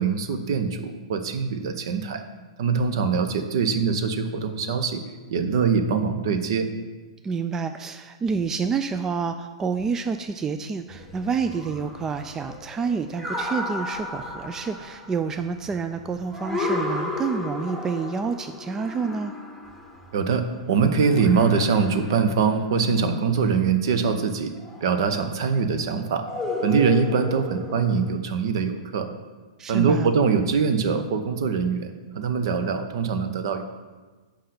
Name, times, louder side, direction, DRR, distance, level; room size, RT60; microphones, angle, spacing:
voice 1, 0.0-2.2 2.6-5.0 5.3-6.7 20.1-24.5 24.8-26.2 26.6-29.1 29.7-33.6, right 5 dB, 55° right, 8 dB, 0.8 m, -23 dB
voice 2, 7.2-19.3 29.6-30.1, right 5 dB, 15° right, 8 dB, 0.3 m, -28 dB
sound 1, 10.9-20.6 21.1-23.1 24.5-25.3 26.2-28.1, left 2 dB, ahead, 1.2 m, -34 dB
5.7 x 5.0 x 6.5 m, 1.3 s
figure-of-eight pair, 105°, 3 cm